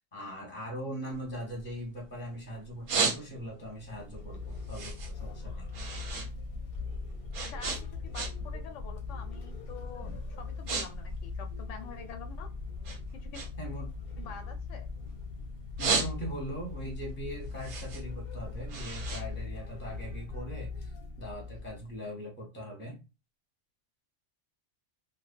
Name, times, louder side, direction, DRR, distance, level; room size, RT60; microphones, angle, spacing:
voice 1, 0.0-5.7 13.6-13.9 15.8-23.0, equal, 10° left, 0.7 m, -41 dB
sound 1, 1.1-2.2 2.6-3.7 4.1-6.3 6.6-8.6 8.9-9.2 9.8-10.0 10.3-10.9 11.1-12.4 12.8-15.2 15.5-16.6 17.0-20.1, right 4 dB, 55° right, 0.7 m, -34 dB
sound 2, 3.8-22.0, left 4 dB, 60° left, 0.7 m, -40 dB
voice 2, 7.4-12.5 13.1-13.4 14.2-14.9, left 6 dB, 90° left, 0.9 m, -47 dB
2.4 x 2.2 x 2.4 m
omnidirectional pair, 1.2 m